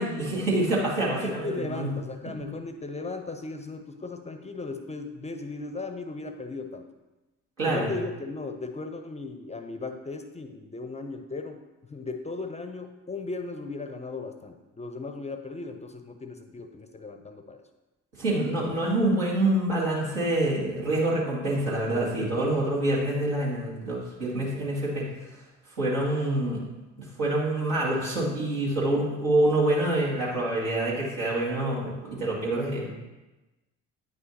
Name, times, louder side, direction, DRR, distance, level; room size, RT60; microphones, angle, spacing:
voice 1, 0.0-1.9 7.6-7.9 18.2-25.1 25.8-26.6 27.0-32.9, right 1 dB, 75° right, -6 dB, 2.1 m, -26 dB
voice 2, 1.1-6.8 7.6-17.6, left 3 dB, 15° left, 7 dB, 0.6 m, -37 dB
9.2 x 5.5 x 2.8 m, 1.1 s
figure-of-eight pair, 50°, 38 cm